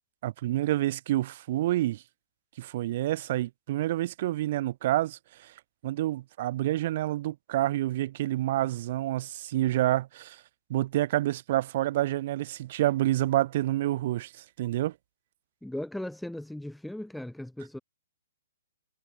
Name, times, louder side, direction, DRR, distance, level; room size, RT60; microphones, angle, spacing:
voice 1, 0.2-2.0 2.6-5.5 5.8-10.4 10.7-14.9, right 15 dB, 40° right, 0.8 m, -28 dB
voice 2, 15.6-17.8, left 1 dB, ahead, 0.9 m, -37 dB
hypercardioid pair, 160°, 0 cm